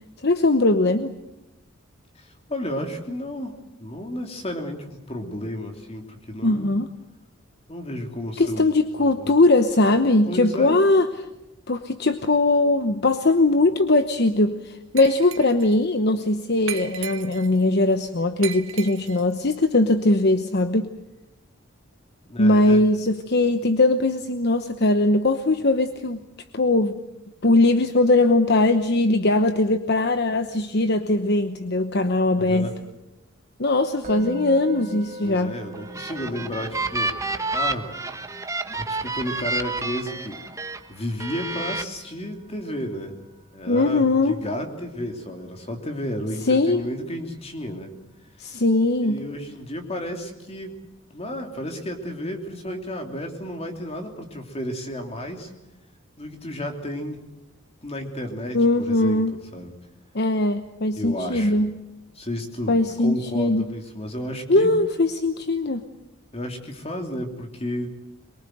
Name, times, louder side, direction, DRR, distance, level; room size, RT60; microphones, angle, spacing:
voice 1, 0.2-1.1 6.4-6.9 8.4-11.1 11.7-20.9 22.4-26.2 26.5-26.9 27.4-32.7 33.6-35.6 43.7-44.4 46.5-46.8 48.4-49.2 58.5-59.3 60.1-61.7 62.7-63.6 64.5-65.8, left 2 dB, 55° left, 9 dB, 1.0 m, -20 dB
voice 2, 2.1-6.7 7.7-8.7 9.0-9.3 10.3-10.8 22.2-22.8 32.4-32.8 35.2-37.2 37.5-37.9 38.7-43.2 43.5-47.9 49.0-50.8 51.1-55.5 56.2-57.2 57.8-59.7 61.0-61.6 62.1-64.7 66.3-67.9, left 1 dB, 30° left, 4 dB, 3.1 m, -32 dB
Glass, 15.0-15.8 16.7-17.6 18.4-19.3, right 10 dB, 85° right, 1.3 m, -36 dB
Musical instrument, 34.0-45.1, right 1 dB, 35° right, 2.7 m, -42 dB
sound 1, 35.7-40.8 41.2-41.8, right 3 dB, 15° right, 1.1 m, -29 dB
23.5 x 23.0 x 7.9 m, 0.93 s
head